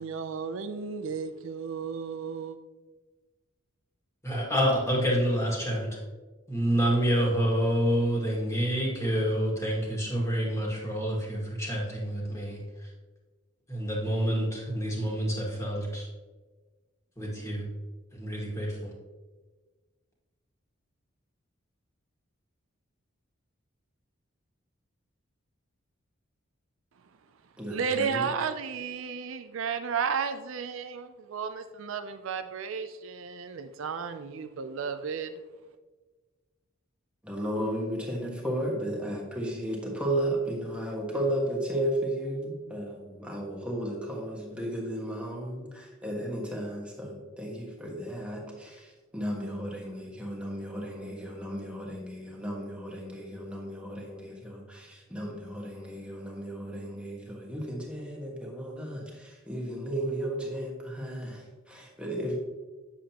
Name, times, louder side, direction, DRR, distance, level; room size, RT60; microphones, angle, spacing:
voice 1, 0.0-2.6 27.0-27.1 27.7-35.4, right 6 dB, 70° right, 0.5 m, -33 dB
voice 2, 4.2-6.0 6.5-12.6 13.7-16.1 17.2-17.6 18.1-18.9, equal, 15° left, 1.9 m, -28 dB
voice 3, 27.6-28.3 37.2-62.4, right 1 dB, 5° right, 1.4 m, -34 dB
8.6 x 7.3 x 2.9 m
head